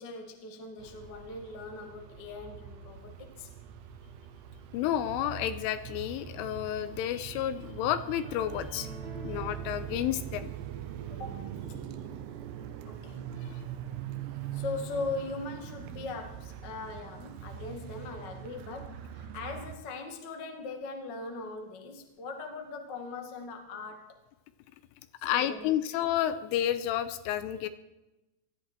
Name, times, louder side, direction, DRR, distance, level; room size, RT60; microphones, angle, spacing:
voice 1, 0.0-3.5 11.1-11.4 12.9-13.3 14.5-24.2 25.2-25.7, left 3 dB, 60° left, 3 dB, 1.1 m, -40 dB
sound 1, 0.8-19.8, right 9 dB, 75° right, 2.7 m, -42 dB
voice 2, 4.7-8.9 9.1-10.5 13.5-13.6 25.2-27.7, left 11 dB, 85° left, 11 dB, 3.2 m, -31 dB
sound 2, 8.2-11.5, right 2 dB, 50° right, 2.4 m, -49 dB
20.0 x 13.5 x 4.6 m, 1.0 s
omnidirectional pair, 5.9 m